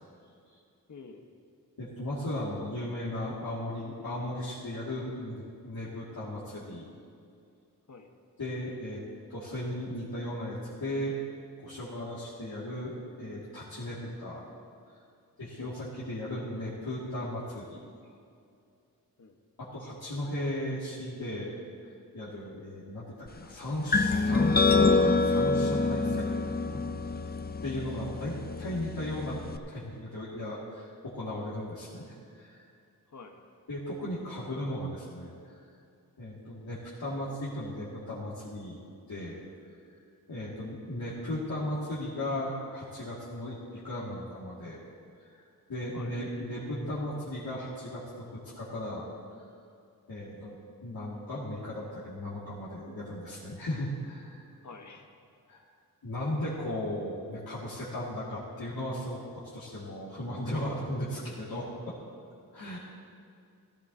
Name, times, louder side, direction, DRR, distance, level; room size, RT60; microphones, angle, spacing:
voice 1, 0.9-1.2 7.9-8.1 15.6-15.8 19.2-19.4 28.4-28.7 33.1-33.4 45.9-46.2 54.6-55.1, left 4 dB, 55° left, 4 dB, 1.1 m, -48 dB
voice 2, 1.8-6.9 8.4-9.0 9.3-11.2 11.6-14.4 15.4-17.8 19.6-21.5 21.8-21.9 22.1-26.3 26.6-27.2 27.6-29.4 29.7-32.6 33.7-35.6 36.2-38.8 39.1-39.4 40.3-44.8 45.2-49.1 50.1-50.5 50.8-54.5 55.5-55.6 56.0-61.9 62.5-62.8, left 1 dB, 85° left, -9 dB, 2.2 m, -36 dB
sound 1, 23.9-29.6, left 3 dB, 30° left, 0.4 m, -26 dB
15.0 x 14.5 x 2.7 m, 2.5 s
wide cardioid pair, 100°, 35 cm